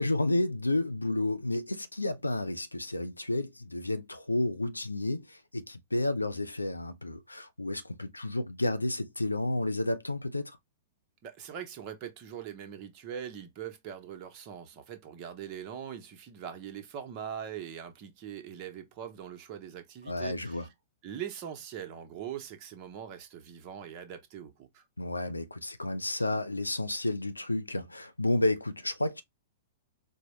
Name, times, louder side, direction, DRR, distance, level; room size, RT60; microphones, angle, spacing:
voice 1, 0.0-10.6 20.1-20.6 25.0-29.2, left 2 dB, 85° left, 0.4 m, -31 dB
voice 2, 11.2-20.7 21.0-24.8, right 9 dB, 40° right, 0.9 m, -42 dB
4.4 x 2.1 x 3.0 m
figure-of-eight pair, 105°, 0 cm